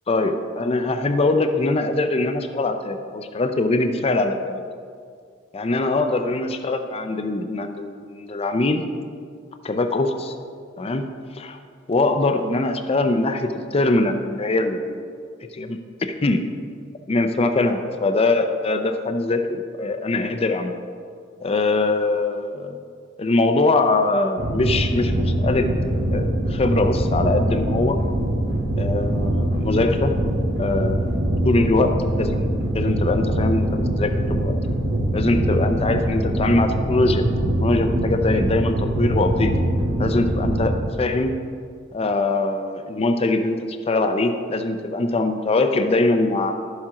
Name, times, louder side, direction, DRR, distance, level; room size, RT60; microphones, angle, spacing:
voice 1, 0.1-4.6 5.5-8.9 9.6-10.3 10.8-11.1 11.3-11.6 11.9-15.0 15.5-16.4 17.1-20.8 21.4-22.8 23.2-28.0 28.7-30.1 30.6-31.1 31.5-34.5 35.1-37.2 37.6-39.5 40.0-40.7 41.0-41.4 41.9-43.6 43.9-46.6, left 2 dB, 30° left, 7 dB, 0.5 m, -22 dB
sound 1, 24.4-40.8, right 1 dB, 80° right, 1.8 m, -23 dB
11.5 x 7.4 x 3.7 m, 2.1 s
head